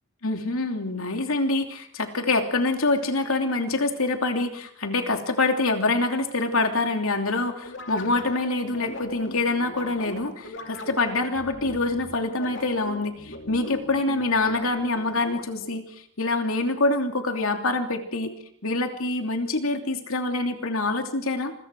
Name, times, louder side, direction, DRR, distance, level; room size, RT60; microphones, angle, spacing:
voice 1, 0.2-15.8 16.2-18.3 18.6-21.5, left 2 dB, 80° left, 5 dB, 3.0 m, -25 dB
sound 1, 7.6-15.7, left 2 dB, 55° left, 2.9 m, -40 dB
27.5 x 22.0 x 4.8 m, 0.63 s
head